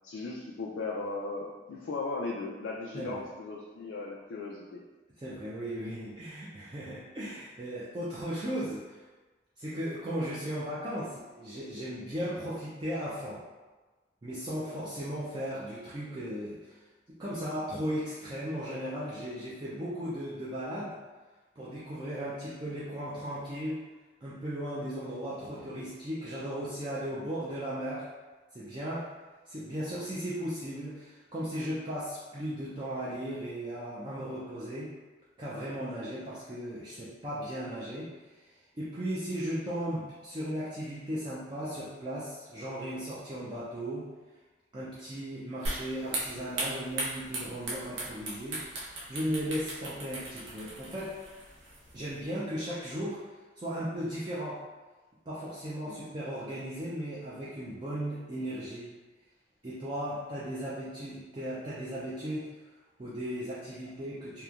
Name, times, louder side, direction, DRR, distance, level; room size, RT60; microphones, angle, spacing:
voice 1, 0.0-4.8 55.8-56.0, left 3 dB, 90° left, -3 dB, 0.3 m, -37 dB
voice 2, 5.2-9.0 9.6-13.4 14.2-16.8 17.2-21.0 21.6-23.8 24.2-28.1 28.5-29.1 29.5-34.9 35.4-38.1 38.4-38.5 38.7-44.1 44.7-51.2 51.9-53.2 53.6-54.6 55.3-58.9 59.6-62.5 63.0-64.4, equal, 25° right, -9 dB, 0.4 m, -36 dB
sound 1, 45.7-52.2, right 2 dB, 80° right, 0.6 m, -38 dB
3.0 x 2.1 x 2.3 m, 1.2 s
head